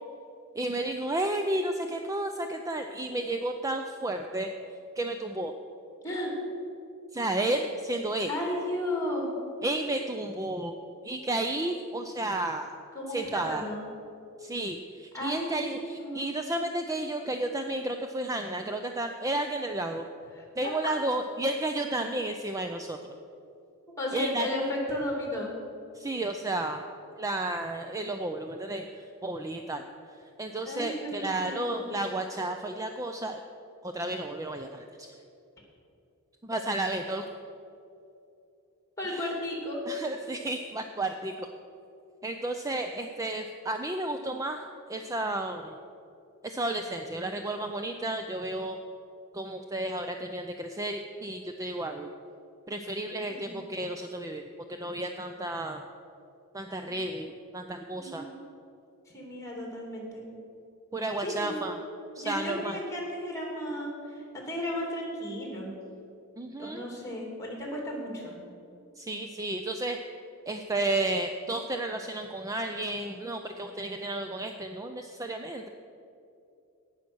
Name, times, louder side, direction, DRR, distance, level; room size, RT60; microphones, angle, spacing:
voice 1, 0.6-4.5 5.0-5.5 7.1-8.3 9.6-10.7 11.0-12.7 13.1-13.6 14.4-20.0 20.6-23.0 24.1-24.5 25.9-26.8 27.2-29.8 30.4-33.4 33.8-35.1 36.4-37.3 39.2-39.3 39.9-41.5 42.2-45.8 46.4-48.8 49.3-52.1 52.7-54.4 54.7-55.8 56.5-58.3 60.9-61.8 62.2-62.8 66.4-66.8 69.0-70.0 70.5-75.7, right 2 dB, 15° right, 5 dB, 0.4 m, -32 dB
voice 2, 6.0-6.3 8.3-9.3 12.9-13.8 15.1-15.6 16.0-16.3 20.3-20.4 24.0-25.5 30.6-32.0 39.0-39.8 53.3-53.6 56.8-57.0 57.9-58.4 59.1-60.3 61.2-61.6 62.2-65.7 66.6-68.4, left 1 dB, 15° left, -1 dB, 2.8 m, -34 dB
17.5 x 6.5 x 6.2 m, 2.6 s
head